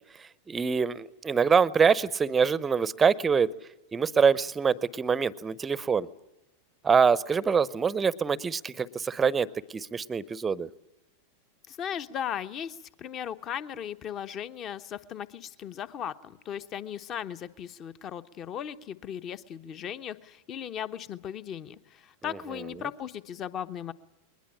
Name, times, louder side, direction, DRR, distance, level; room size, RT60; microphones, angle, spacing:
voice 1, 0.5-3.5 3.9-6.1 6.8-9.5 9.7-10.7, right 6 dB, 15° right, 21 dB, 0.8 m, -24 dB
voice 2, 11.7-23.9, left 9 dB, 30° left, 12 dB, 1.0 m, -37 dB
21.5 x 20.0 x 8.8 m, 0.92 s
figure-of-eight pair, 90°, 0 cm